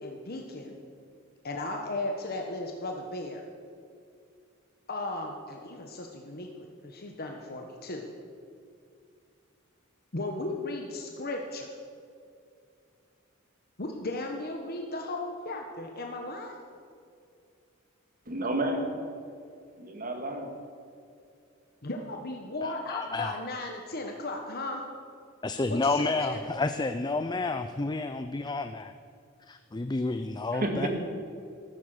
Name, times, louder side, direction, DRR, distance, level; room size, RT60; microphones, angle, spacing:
voice 1, 0.0-0.8 1.4-3.4 4.9-6.5 6.8-8.0 10.1-11.8 13.8-16.7 21.8-24.8 25.7-26.4, left 2 dB, 50° left, 2 dB, 1.3 m, -36 dB
voice 2, 18.3-18.9 19.8-20.5 30.5-30.9, right 1 dB, 45° right, 4 dB, 2.3 m, -30 dB
voice 3, 22.6-23.4 25.4-28.9 29.5-30.9, left 3 dB, 20° left, 8 dB, 0.5 m, -30 dB
14.0 x 13.5 x 6.7 m, 2.4 s
head